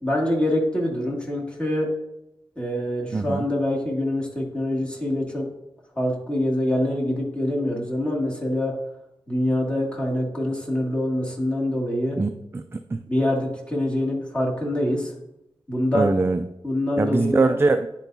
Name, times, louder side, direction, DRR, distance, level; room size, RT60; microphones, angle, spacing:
voice 1, 0.0-1.9 2.6-5.5 6.0-8.8 9.3-12.2 13.1-15.1 15.7-16.1 16.6-17.5, left 1 dB, 10° left, -2 dB, 2.2 m, -25 dB
voice 2, 3.1-3.5 12.1-13.0 15.9-16.5 17.0-17.9, right 3 dB, 25° right, 8 dB, 0.3 m, -22 dB
10.5 x 4.5 x 2.7 m, 0.88 s
cardioid pair, 65°, 10 cm